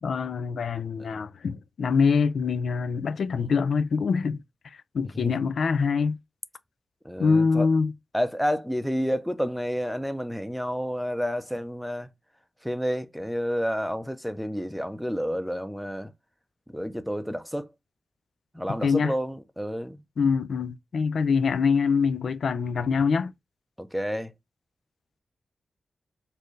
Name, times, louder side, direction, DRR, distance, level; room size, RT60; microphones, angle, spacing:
voice 1, 0.0-4.4 4.9-6.2 7.2-7.9 18.8-19.1 20.2-23.3, left 5 dB, 85° left, 0.3 m, -24 dB
voice 2, 7.0-7.7 8.1-12.1 12.6-16.1 16.7-17.7 18.5-20.0 23.8-24.3, equal, ahead, 0.5 m, -30 dB
4.2 x 2.6 x 3.1 m
wide cardioid pair, 100°, 0 cm